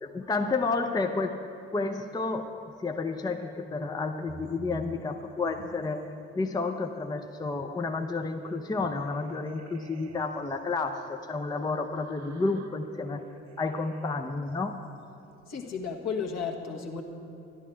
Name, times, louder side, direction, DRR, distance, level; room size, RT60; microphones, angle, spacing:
voice 1, 0.0-1.4 1.7-13.3 13.6-14.8, left 3 dB, 10° left, 5 dB, 0.6 m, -31 dB
sound 1, 4.3-6.2 6.6-15.6, right 6 dB, 50° right, 1.1 m, -52 dB
voice 2, 15.5-17.0, left 5 dB, 50° left, 2 dB, 1.4 m, -33 dB
13.5 x 11.5 x 4.5 m, 2.7 s
figure-of-eight pair, 45°, 35 cm